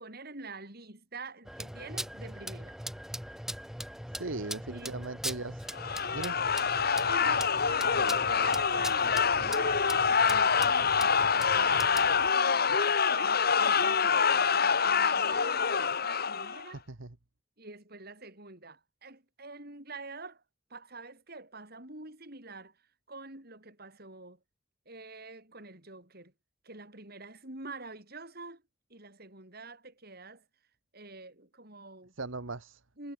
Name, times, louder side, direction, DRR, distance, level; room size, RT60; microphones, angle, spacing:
voice 1, 0.0-2.8 4.2-5.0 7.0-7.6 7.9-16.8 17.6-20.4 20.7-22.8 23.1-24.4 24.9-26.3 26.6-28.6 28.9-30.4 30.9-32.1 33.0-33.1, right 3 dB, 50° right, 7.9 m, -46 dB
sound 1, 1.4-12.3, equal, ahead, 4.1 m, -41 dB
voice 2, 4.2-5.6 6.1-6.4 16.9-17.1 32.2-32.8, right 3 dB, 80° right, 1.5 m, -38 dB
sound 2, 5.7-16.7, left 6 dB, 50° left, 1.6 m, -26 dB
head